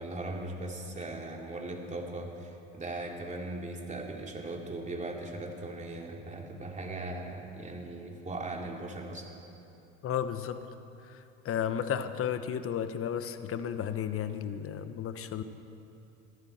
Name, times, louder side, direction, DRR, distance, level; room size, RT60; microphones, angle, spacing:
voice 1, 0.0-9.3, right 2 dB, 20° right, 1 dB, 2.9 m, -39 dB
voice 2, 10.0-10.6 11.0-15.4, left 8 dB, 45° left, 11 dB, 1.1 m, -33 dB
22.5 x 14.5 x 4.4 m, 2.8 s
hypercardioid pair, 80°, 33 cm